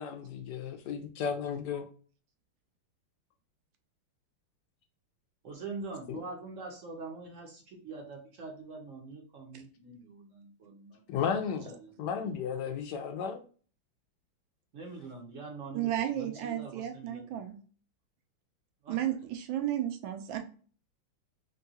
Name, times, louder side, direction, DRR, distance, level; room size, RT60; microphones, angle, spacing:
voice 1, 0.0-1.8 6.1-6.2 11.1-13.4, left 7 dB, 75° left, 1.0 m, -34 dB
voice 2, 5.4-11.2 11.6-12.2 14.7-17.4 18.8-19.0, right 3 dB, 55° right, 0.9 m, -44 dB
voice 3, 15.7-17.6 18.9-20.4, right 12 dB, 75° right, 1.3 m, -33 dB
3.7 x 2.3 x 2.7 m
omnidirectional pair, 2.2 m